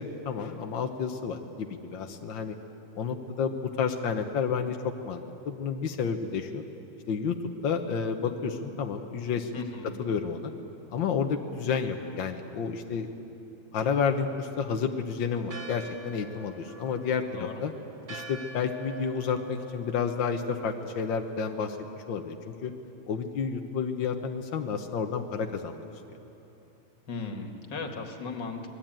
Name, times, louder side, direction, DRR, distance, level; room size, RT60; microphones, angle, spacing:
voice 1, 0.0-2.6 2.9-5.2 5.4-6.6 7.1-9.5 10.0-10.5 10.9-13.1 13.7-17.7 18.1-21.8 22.1-22.7 23.1-25.8, left 6 dB, 75° left, 4 dB, 1.1 m, -30 dB
voice 2, 9.5-9.9 17.4-17.6 27.1-28.7, left 4 dB, 40° left, 4 dB, 2.1 m, -36 dB
Church bell, 15.5-21.7, right 3 dB, 55° right, 0.8 m, -47 dB
25.5 x 20.0 x 9.0 m, 2.9 s
omnidirectional pair, 3.6 m